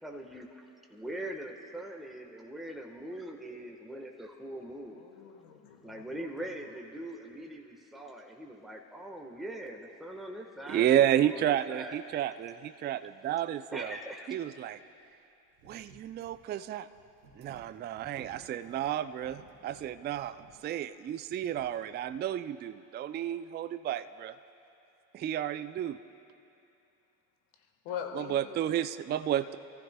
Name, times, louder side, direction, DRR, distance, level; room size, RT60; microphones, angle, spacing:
voice 1, 0.0-5.0 5.8-12.0 13.7-14.3, right 1 dB, ahead, 2 dB, 1.2 m, -42 dB
voice 2, 4.9-6.3 27.6-28.6, left 8 dB, 70° left, 3 dB, 1.6 m, -42 dB
voice 3, 10.7-14.0 14.3-14.8 15.6-16.9 17.3-24.4 25.1-26.0 28.1-29.6, right 11 dB, 25° right, 13 dB, 0.3 m, -31 dB
sound 1, 14.7-14.8 15.0-15.1 15.5-22.2, right 3 dB, 85° right, 1.5 m, -58 dB
27.5 x 14.5 x 2.2 m, 2.7 s
hypercardioid pair, 60°, 48 cm